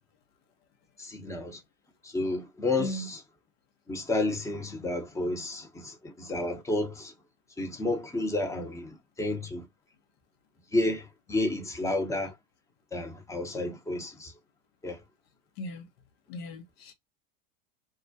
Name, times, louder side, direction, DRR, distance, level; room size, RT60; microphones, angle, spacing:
voice 1, 1.0-1.6 2.0-3.2 3.9-7.1 7.6-9.7 10.7-12.3 12.9-14.3 14.8-15.0, left 2 dB, 10° left, 0.7 m, -31 dB
voice 2, 2.8-3.1 15.6-15.9 16.3-16.9, left 1 dB, 75° left, 0.8 m, -37 dB
2.3 x 2.0 x 2.6 m
hypercardioid pair, 95°, 31 cm